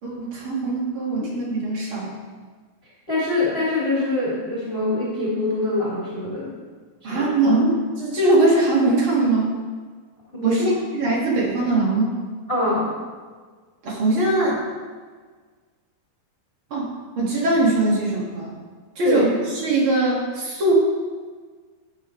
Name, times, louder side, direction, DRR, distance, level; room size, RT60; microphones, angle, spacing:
voice 1, 0.0-2.2 7.0-9.5 10.4-12.1 13.8-14.6 16.7-16.9 17.2-18.6 19.0-19.3 19.6-20.7, right 2 dB, 40° right, -4 dB, 2.2 m, -21 dB
voice 2, 3.1-6.5 7.0-7.3 10.3-10.7 12.5-12.9 19.0-19.3, left 2 dB, 15° left, -8 dB, 2.5 m, -24 dB
13.5 x 9.5 x 3.3 m, 1.5 s
omnidirectional pair, 4.8 m